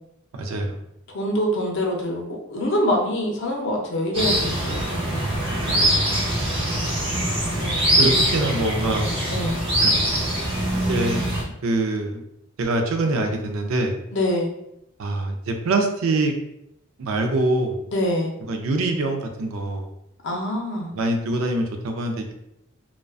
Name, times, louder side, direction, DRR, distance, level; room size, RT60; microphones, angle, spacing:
voice 1, 0.3-0.8 5.7-6.0 7.1-7.2 8.0-9.1 9.8-9.9 10.7-11.2 11.6-12.2 12.6-13.9 15.0-16.3 17.0-17.8 18.5-19.9 20.9-22.3, right 2 dB, 85° right, 4 dB, 0.4 m, -24 dB
voice 2, 1.1-4.9 7.6-8.2 9.3-9.6 14.1-14.5 17.9-18.3 20.2-20.9, left 1 dB, 60° left, 1 dB, 0.5 m, -25 dB
sound 1, 4.1-11.4, right 1 dB, 30° right, 0.6 m, -23 dB
2.4 x 2.1 x 2.3 m, 0.79 s
head